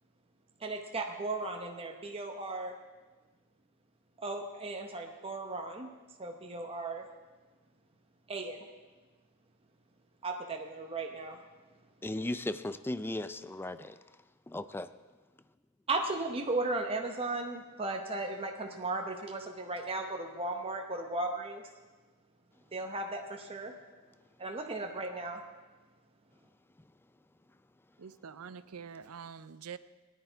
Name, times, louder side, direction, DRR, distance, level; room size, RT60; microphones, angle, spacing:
voice 1, 0.6-2.7 4.2-5.9 6.2-7.1 8.3-8.7 10.2-11.4 15.9-21.6 22.7-23.7 24.4-25.4, right 2 dB, 25° right, 2 dB, 0.9 m, -36 dB
voice 2, 12.0-14.0 14.5-14.9, left 1 dB, 10° left, 12 dB, 0.4 m, -36 dB
voice 3, 28.0-29.8, right 6 dB, 85° right, 14 dB, 0.5 m, -45 dB
18.5 x 10.5 x 4.6 m, 1.3 s
head